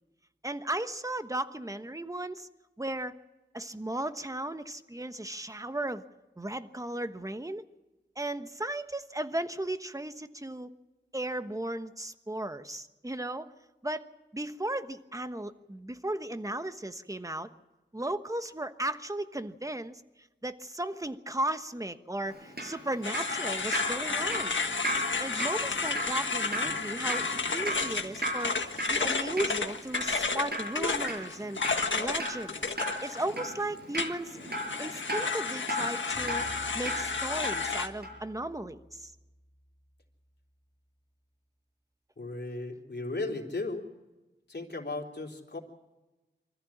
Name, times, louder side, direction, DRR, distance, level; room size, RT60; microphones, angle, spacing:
voice 1, 0.4-2.5 2.8-3.1 3.5-6.0 6.4-7.6 8.2-10.7 11.1-13.5 13.8-14.0 14.3-17.5 17.9-20.0 20.4-24.6 25.2-27.2 27.5-28.6 28.9-31.6 31.9-32.6 33.0-34.4 34.8-36.5 36.7-39.1, right 1 dB, 15° right, 9 dB, 1.2 m, -35 dB
Drip, 22.3-37.7 38.0-38.2, equal, 60° right, 6.0 m, -36 dB
sound 1, 23.0-33.5 34.0-37.9, left 4 dB, 85° left, 1.5 m, -32 dB
sound 2, 36.1-40.5, left 1 dB, 35° left, 2.9 m, -51 dB
voice 2, 42.2-43.8 44.5-45.6, left 2 dB, 65° left, 1 dB, 3.6 m, -36 dB
25.0 x 14.5 x 8.7 m, 1.1 s
wide cardioid pair, 65°, 19 cm